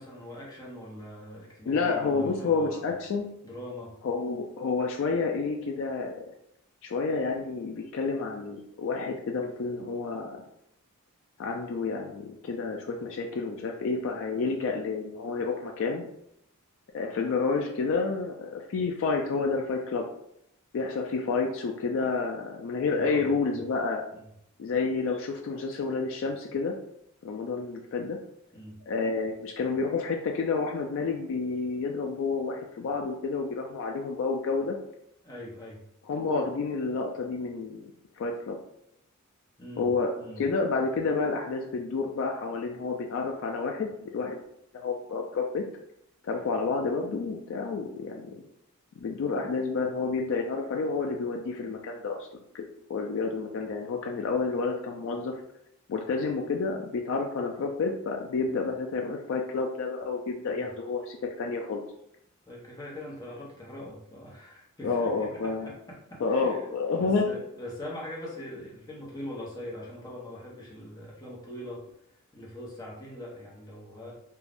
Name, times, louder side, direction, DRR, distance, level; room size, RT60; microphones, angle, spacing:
voice 1, 0.0-2.9 3.4-4.0 22.9-23.6 24.1-24.3 28.5-28.8 35.2-35.8 39.6-40.5 60.5-60.7 62.5-66.7 67.0-71.8 72.3-74.1, left 1 dB, 15° left, -5 dB, 0.7 m, -42 dB
voice 2, 1.7-3.3 4.0-6.3 6.8-10.4 11.4-16.0 16.9-20.1 20.7-24.0 24.6-26.8 27.2-28.2 28.9-34.8 36.1-37.9 38.2-38.6 39.8-40.1 40.4-44.4 44.7-45.6 46.2-48.3 49.0-52.2 52.5-52.6 52.9-55.4 55.9-61.8 64.8-65.7 66.2-67.3, left 4 dB, 60° left, 2 dB, 0.3 m, -29 dB
2.5 x 2.2 x 3.3 m, 0.75 s
head